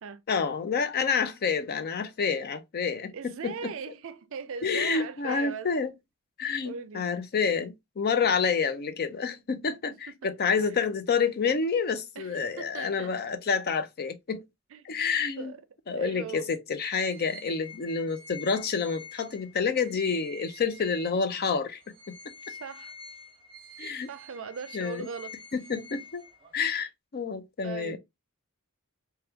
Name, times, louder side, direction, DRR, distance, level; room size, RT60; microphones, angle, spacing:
voice 1, 0.3-3.7 4.6-5.9 6.4-14.4 14.8-15.5 15.9-21.8 22.1-22.2 23.8-24.1 24.7-25.1 25.5-26.2 26.5-28.0, left 5 dB, 45° left, 0.5 m, -28 dB
voice 2, 3.1-5.7 6.6-7.1 10.1-10.8 12.2-13.1 14.7-15.0 15.4-15.6 16.0-16.5 22.5-22.9 24.1-25.3 27.6-28.0, right 6 dB, 65° right, 0.5 m, -39 dB
sound 1, 17.0-21.4 21.8-26.7, left 1 dB, 25° right, 1.1 m, -47 dB
3.4 x 2.3 x 2.8 m
head